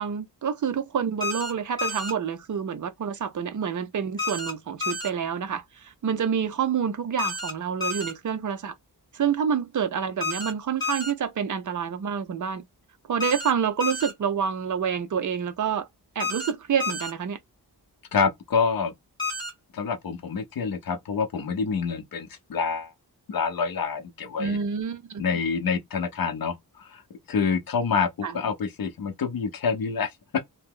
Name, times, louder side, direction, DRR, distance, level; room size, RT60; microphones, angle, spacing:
voice 1, 0.0-8.7 9.1-12.6 13.1-15.9 16.2-17.4 24.4-25.2 28.2-28.4, right 7 dB, 50° right, 0.5 m, -28 dB
sound 1, 1.2-1.5 1.8-2.1 4.2-4.5 4.8-5.1 7.2-7.5 7.8-8.1 10.2-10.5 10.8-11.1 13.2-13.5 13.8-14.1 16.2-16.5 16.8-17.1 19.2-19.5, left 3 dB, 10° left, 1.1 m, -30 dB
voice 2, 18.1-18.9 19.7-22.9 23.3-24.6 25.2-27.0 27.3-30.1, left 5 dB, 60° left, 0.7 m, -27 dB
2.8 x 2.0 x 3.6 m
wide cardioid pair, 150°, 39 cm